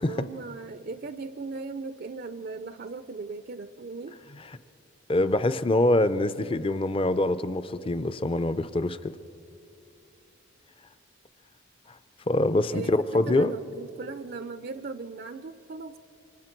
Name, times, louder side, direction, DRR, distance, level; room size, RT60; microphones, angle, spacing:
voice 1, 0.0-4.2 12.7-16.0, right 3 dB, 45° right, 11 dB, 0.5 m, -38 dB
voice 2, 5.1-9.2 12.3-13.5, left 2 dB, 25° left, 13 dB, 0.5 m, -25 dB
27.0 x 24.5 x 4.5 m, 2.7 s
head